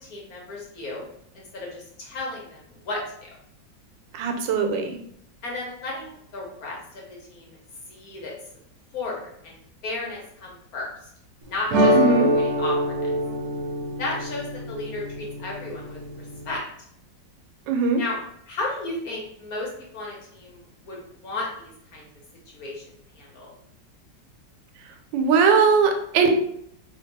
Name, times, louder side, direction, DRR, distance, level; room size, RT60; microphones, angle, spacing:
voice 1, 0.0-1.0 1.3-3.3 5.4-7.6 7.9-8.3 8.9-9.5 9.8-10.9 11.4-12.0 12.3-12.9 14.0-16.0 16.4-16.6 18.0-18.2 18.5-20.6 20.9-22.1 22.5-23.5, left 2 dB, 60° left, -2 dB, 1.3 m, -34 dB
voice 2, 4.1-5.0 11.9-12.3 17.7-18.0 25.1-26.3, right 5 dB, 85° right, 5 dB, 1.3 m, -20 dB
sound 1, 11.7-16.6, equal, 70° right, 1.1 m, -24 dB
2.8 x 2.8 x 4.0 m, 0.69 s
omnidirectional pair, 2.0 m